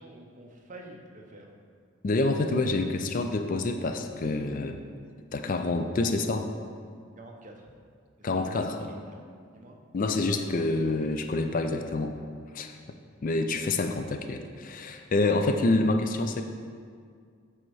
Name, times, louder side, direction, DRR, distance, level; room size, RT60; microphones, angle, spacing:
voice 1, 0.0-1.5 7.2-7.7 8.2-9.8, right 2 dB, 35° right, 1 dB, 0.8 m, -48 dB
voice 2, 2.0-4.8 5.3-6.5 8.2-8.9 9.9-12.1 12.5-12.7 13.2-16.4, left 2 dB, 40° left, 6 dB, 0.4 m, -27 dB
7.7 x 4.3 x 4.7 m, 2.1 s
head